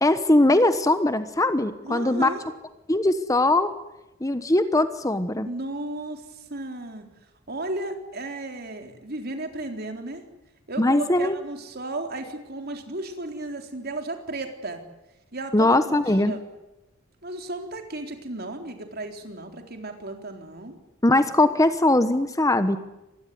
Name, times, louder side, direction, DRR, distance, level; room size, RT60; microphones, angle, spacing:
voice 1, 0.0-2.3 2.9-3.7 4.2-5.5 10.8-11.4 15.5-16.3 21.0-22.8, left 2 dB, 15° left, 11 dB, 1.1 m, -20 dB
voice 2, 1.8-2.5 5.4-7.0 7.5-10.2 10.7-14.8 15.3-16.4 17.2-20.8, right 2 dB, 50° right, 5 dB, 4.0 m, -34 dB
25.5 x 20.5 x 9.5 m, 0.96 s
head